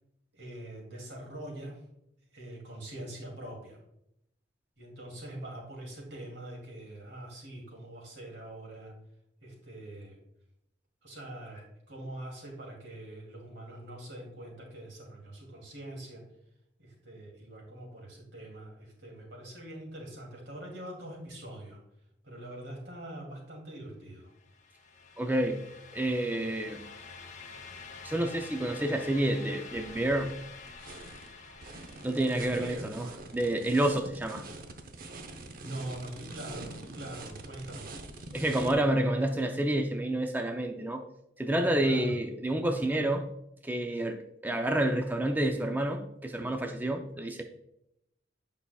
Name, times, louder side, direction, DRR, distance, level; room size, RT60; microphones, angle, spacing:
voice 1, 0.3-1.8 2.3-3.8 4.8-8.9 9.4-10.2 11.0-16.2 16.8-21.8 22.2-24.3 32.4-32.9 35.6-38.0 41.8-42.2, right 1 dB, 85° right, -1 dB, 2.6 m, -43 dB
sound 1, 24.4-33.3, left 5 dB, 45° left, 0.8 m, -48 dB
voice 2, 25.2-25.6 25.9-26.8 28.0-30.3 32.0-34.4 38.3-41.0 41.4-43.3 43.6-47.4, right 1 dB, 10° right, 4 dB, 0.4 m, -29 dB
sound 2, 29.6-38.7, right 2 dB, 55° right, 0.7 m, -45 dB
8.3 x 5.5 x 2.3 m, 0.79 s
head